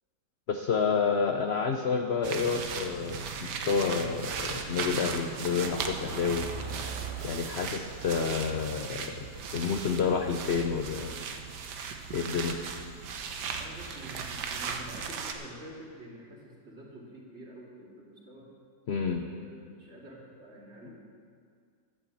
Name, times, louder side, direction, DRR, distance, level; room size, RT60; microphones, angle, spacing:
voice 1, 0.5-6.5 7.2-9.2 9.5-11.1 12.1-12.6 18.9-19.3, left 5 dB, 60° left, 5 dB, 0.7 m, -29 dB
sound 1, 2.2-15.3, right 5 dB, 85° right, 1.5 m, -37 dB
voice 2, 13.6-18.5 19.2-21.0, right 1 dB, 40° right, -4 dB, 2.8 m, -47 dB
12.0 x 8.6 x 7.3 m, 2.1 s
omnidirectional pair, 1.8 m